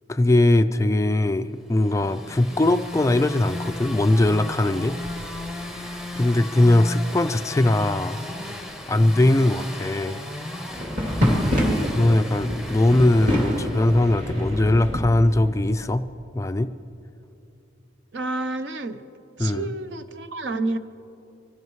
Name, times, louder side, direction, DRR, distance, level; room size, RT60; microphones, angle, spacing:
voice 1, 0.1-5.0 6.2-8.2 8.9-10.2 12.0-16.1 16.3-16.7 19.4-19.7, left 1 dB, 15° left, 9 dB, 0.3 m, -20 dB
sound 1, 1.8-14.7, left 1 dB, 5° right, 0.8 m, -35 dB
sound 2, 10.7-15.6, equal, 40° right, 2.8 m, -26 dB
voice 2, 11.5-11.8 18.1-19.0 19.4-20.8, right 2 dB, 65° right, 10 dB, 0.7 m, -29 dB
25.0 x 16.0 x 3.1 m, 2.7 s
head